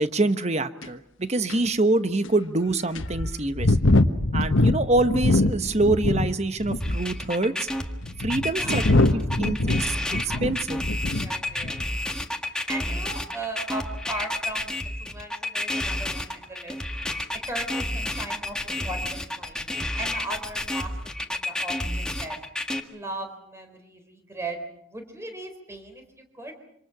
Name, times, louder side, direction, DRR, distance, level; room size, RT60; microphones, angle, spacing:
voice 1, 0.0-3.8 4.3-7.7 8.2-9.9 10.4-10.8, right 2 dB, 35° right, 10 dB, 1.1 m, -25 dB
sound 1, 0.8-0.9 1.5-1.6 2.2-2.3 3.0-6.3 6.6-7.1 7.8-11.3 11.6-11.9, left 2 dB, 80° left, 1.3 m, -23 dB
sound 2, 6.8-22.8, left 1 dB, 5° left, 1.7 m, -30 dB
voice 2, 8.5-10.4 10.7-11.8 12.4-16.8 17.3-22.5 22.9-24.6 24.9-26.6, right 2 dB, 15° right, 5 dB, 4.2 m, -38 dB
27.0 x 26.5 x 6.1 m, 0.72 s
head